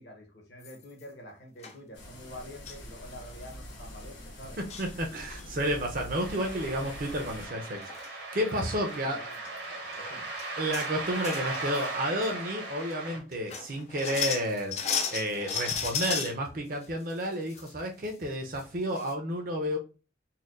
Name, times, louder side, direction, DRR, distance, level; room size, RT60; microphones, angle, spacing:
voice 1, 0.0-4.6 8.9-10.4, equal, 60° left, 2 dB, 0.9 m, -47 dB
sound 1, 0.6-1.0 1.6-1.8 2.7-2.9 3.2-3.3 3.5-3.7 4.4-4.9 5.3-5.7 7.5-7.6 7.8-8.1 8.5-8.6 9.3-9.5 9.9-10.0 10.4-10.9 11.2-11.9 12.2-12.3 12.9-13.0 13.3-16.3 16.8-17.7 18.0-18.1 18.6-18.7 19.0-19.1, left 7 dB, 35° left, 0.3 m, -34 dB
sound 2, 1.9-7.5, left 1 dB, 80° left, 1.2 m, -45 dB
voice 2, 4.6-9.2 9.7-10.1 10.6-19.8, equal, 45° right, 2 dB, 0.6 m, -31 dB
sound 3, 6.1-13.2, right 2 dB, 65° right, 0.9 m, -38 dB
4.2 x 2.2 x 2.4 m, 0.32 s
head